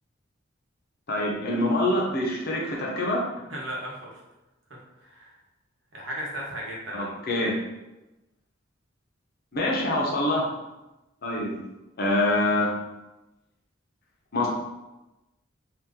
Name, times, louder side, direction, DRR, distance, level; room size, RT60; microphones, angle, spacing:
voice 1, 1.1-3.2 6.9-7.6 9.5-10.5 11.2-11.6 12.0-12.7 14.3-14.5, left 1 dB, 50° left, -2 dB, 0.7 m, -25 dB
voice 2, 3.5-4.2 5.0-5.3 5.9-7.1, right 1 dB, 70° right, -4 dB, 1.0 m, -35 dB
2.8 x 2.5 x 3.6 m, 1.0 s
head